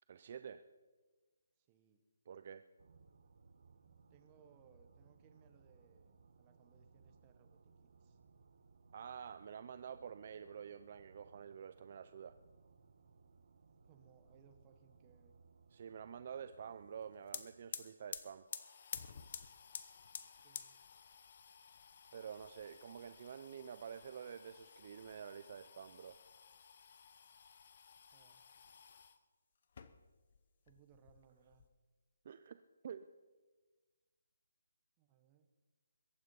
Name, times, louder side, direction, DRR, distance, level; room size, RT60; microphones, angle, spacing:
voice 1, 0.1-0.6 2.3-2.6 8.9-12.4 15.7-18.5 22.1-26.2 32.2-33.1, right 7 dB, 30° right, 11 dB, 0.4 m, -49 dB
voice 2, 1.6-2.0 4.1-8.2 13.8-15.3 20.3-20.8 28.1-28.4 30.6-31.6 35.0-35.5, right 7 dB, 15° right, 6 dB, 0.9 m, -68 dB
sound 1, 2.8-17.9, right 4 dB, 45° right, 1.0 m, -66 dB
sound 2, 16.9-17.0 17.2-29.2 29.6-30.4 30.7-31.7, left 7 dB, 35° left, 0.8 m, -52 dB
22.0 x 9.3 x 5.4 m, 1.3 s
hypercardioid pair, 175°, 0 cm